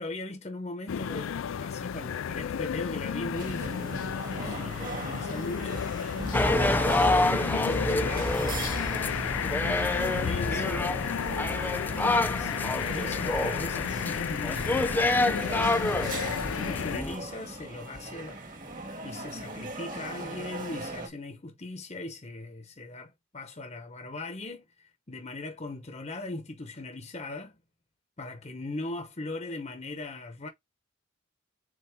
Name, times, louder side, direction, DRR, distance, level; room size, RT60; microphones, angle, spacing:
voice 1, 0.0-6.0 6.5-11.0 12.0-14.9 15.8-18.4 18.8-27.6 28.2-30.5, left 2 dB, 30° left, 0.9 m, -39 dB
sound 1, 0.9-17.0, left 8 dB, 70° left, 0.4 m, -33 dB
sound 2, 3.3-21.1, right 2 dB, 40° right, 2.2 m, -39 dB
sound 3, 6.3-17.2, left 2 dB, 10° left, 0.5 m, -28 dB
7.0 x 4.2 x 3.6 m
head